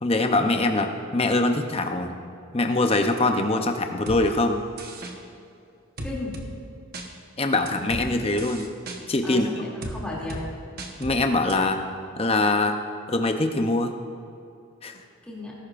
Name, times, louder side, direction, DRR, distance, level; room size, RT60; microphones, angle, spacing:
voice 1, 0.0-2.2 2.5-4.6 7.4-8.7 9.1-9.7 11.0-11.8 12.2-12.8 13.1-13.9 14.8-14.9, left 2 dB, 25° left, 5 dB, 0.7 m, -23 dB
sound 1, 4.1-4.2 4.8-5.1 6.0-6.5 6.9-7.1 7.7-8.0 8.4-9.0 9.8-10.0 10.3-10.4 10.8-11.2 11.5-11.6, right 1 dB, 45° right, 1.1 m, -35 dB
voice 2, 6.0-6.4 8.0-8.3 9.2-10.4 15.2-15.5, left 2 dB, 5° left, -6 dB, 2.6 m, -35 dB
19.0 x 11.5 x 2.5 m, 2.6 s
head